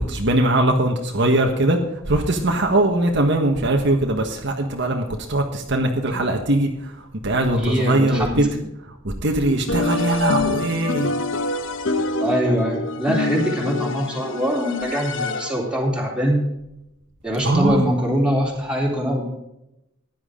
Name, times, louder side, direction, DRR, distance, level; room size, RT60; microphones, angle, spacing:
voice 1, 0.0-1.8 2.1-6.9 7.2-8.4 9.0-11.1 17.4-17.9, right 1 dB, 60° right, 2 dB, 1.5 m, -21 dB
voice 2, 7.6-8.4 12.2-16.5 17.2-19.3, equal, 5° right, -3 dB, 3.7 m, -23 dB
sound 1, 9.7-15.8, left 3 dB, 65° left, 1.0 m, -26 dB
15.5 x 10.5 x 3.9 m, 0.86 s
head